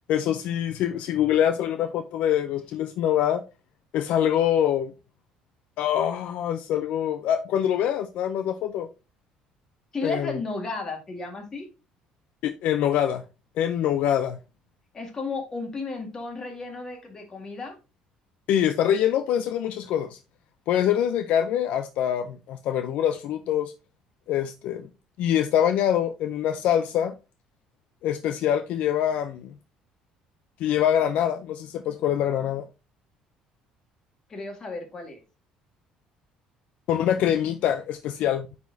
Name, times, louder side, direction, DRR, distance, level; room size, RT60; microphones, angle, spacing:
voice 1, 0.1-3.4 3.9-4.9 5.8-8.9 10.0-10.4 12.4-13.2 13.6-14.4 18.5-20.2 20.7-23.7 24.3-24.9 25.2-27.1 28.0-29.5 30.6-32.6 36.9-38.5, left 10 dB, 60° left, 0.5 m, -24 dB
voice 2, 9.9-11.7 14.9-17.8 34.3-35.2, left 3 dB, 25° left, 1.8 m, -33 dB
9.4 x 4.2 x 2.7 m
cardioid pair, 155°, 3 cm